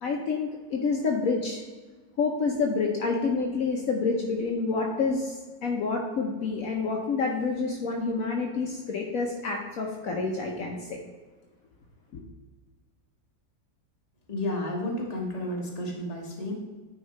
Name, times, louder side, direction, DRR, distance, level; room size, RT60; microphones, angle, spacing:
voice 1, 0.0-1.6 2.2-11.0 12.1-12.2, left 4 dB, 65° left, 0 dB, 1.2 m, -28 dB
voice 2, 14.3-16.5, left 1 dB, 25° left, -1 dB, 1.3 m, -31 dB
9.2 x 3.8 x 4.4 m, 1.3 s
omnidirectional pair, 1.7 m